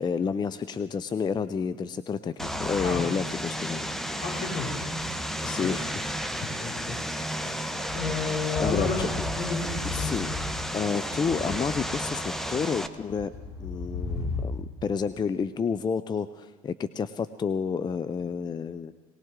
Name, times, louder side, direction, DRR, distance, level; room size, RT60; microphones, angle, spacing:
voice 1, 0.0-4.2 5.4-6.1 7.5-7.7 8.6-9.2 9.9-10.3 10.7-13.3 13.6-18.9, left 6 dB, 25° left, 13 dB, 0.5 m, -30 dB
sound 1, 2.4-14.4, left 3 dB, 85° left, 4.4 m, -38 dB
Vehicle, 2.4-12.9, equal, ahead, 0.9 m, -33 dB
voice 2, 4.2-4.7 5.1-5.7 6.3-7.2 7.9-9.0 9.3-10.1, left 4 dB, 60° left, -4 dB, 5.0 m, -32 dB
19.5 x 19.0 x 3.7 m, 1.3 s
hypercardioid pair, 70°, 18 cm